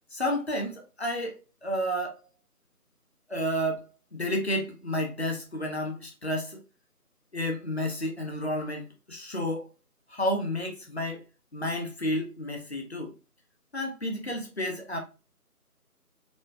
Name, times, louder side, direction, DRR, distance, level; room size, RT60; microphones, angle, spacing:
voice 1, 0.1-2.2 3.3-3.8 4.1-6.6 7.3-9.7 10.1-11.2 11.5-13.1 13.7-15.0, equal, 45° left, 0.8 m, -31 dB
4.3 x 2.2 x 2.7 m
figure-of-eight pair, 165°, 46 cm